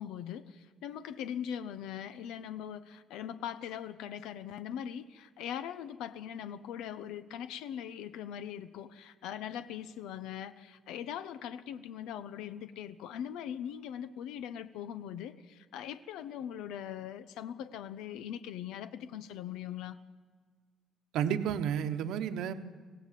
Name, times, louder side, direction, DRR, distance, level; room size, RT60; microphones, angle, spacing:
voice 1, 0.0-20.0, left 9 dB, 85° left, 13 dB, 0.8 m, -41 dB
voice 2, 21.1-22.5, right 9 dB, 70° right, 9 dB, 1.1 m, -31 dB
25.0 x 16.5 x 7.6 m, 1.5 s
cardioid pair, 160°, 0 cm